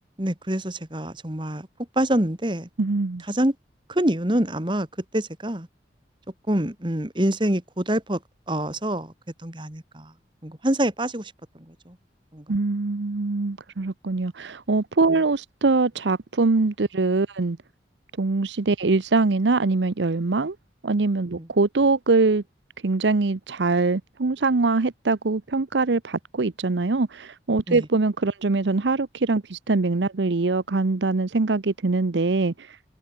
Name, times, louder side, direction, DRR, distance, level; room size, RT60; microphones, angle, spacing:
voice 1, 0.2-1.7 2.0-2.7 3.3-3.5 3.9-4.9 5.1-5.7 6.5-8.2 8.5-9.1 9.4-10.1 10.4-11.3 11.7-12.0 12.3-12.4 21.4-21.5 27.7-27.8, right 1 dB, 25° right, 2.2 m, -25 dB
voice 2, 2.8-3.2 12.5-17.6 18.2-20.6 20.8-22.4 22.8-32.7, right 3 dB, 85° right, 0.8 m, -23 dB
head